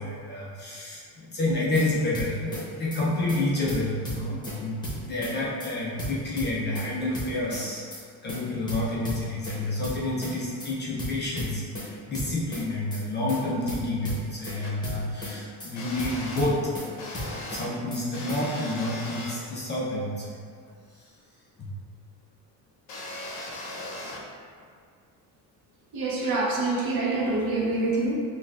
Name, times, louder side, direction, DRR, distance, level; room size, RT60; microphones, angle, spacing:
voice 1, 0.0-7.8 8.2-16.6 17.5-20.4 21.6-21.7 23.4-23.5, left 2 dB, 30° left, -6 dB, 0.4 m, -29 dB
sound 1, 1.5-1.9 2.1-2.6 2.9-3.0 3.3-3.4 3.7-4.6 4.8-5.3 5.6-5.7 6.0-6.9 7.1-7.6 7.9-8.0 8.3-8.4 8.7-9.6 9.8-10.3 10.6-10.7 11.0-11.9 12.1-12.6 12.9-13.0 13.3-13.4 13.7-14.6 14.8-15.3 15.6-15.7 16.0-16.9 17.1-17.6 17.9-18.0 18.3-18.4, equal, 10° left, 0.8 m, -35 dB
sound 2, 14.6-14.7 15.8-16.5 17.0-17.7 18.1-19.3 22.9-24.2, left 2 dB, 60° left, 0.8 m, -38 dB
voice 2, 25.9-28.1, right 2 dB, 60° right, -4 dB, 0.9 m, -26 dB
6.3 x 2.3 x 2.3 m, 2.2 s
cardioid pair, 170°, 42 cm